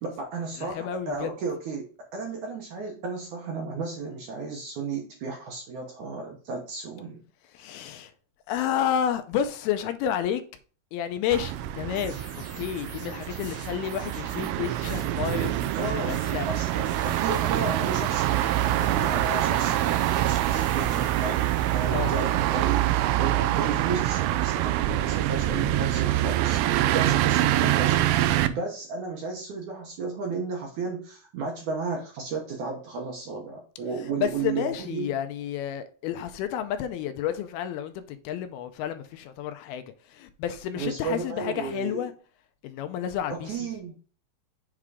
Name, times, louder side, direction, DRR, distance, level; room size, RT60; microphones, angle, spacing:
voice 1, 0.0-7.2 15.8-35.1 40.7-42.1 43.3-43.9, right 4 dB, 65° right, 2.0 m, -34 dB
voice 2, 0.6-1.3 7.5-8.1 8.5-10.4 10.9-12.1 12.6-16.5 21.9-22.2 26.8-27.1 34.2-39.8 40.1-42.1 42.6-43.7, left 9 dB, 85° left, 2.5 m, -30 dB
sound 1, 11.3-28.5, right 14 dB, 90° right, 2.6 m, -25 dB
sound 2, 11.9-23.3, equal, 20° right, 0.4 m, -47 dB
7.6 x 3.7 x 4.8 m
omnidirectional pair, 4.6 m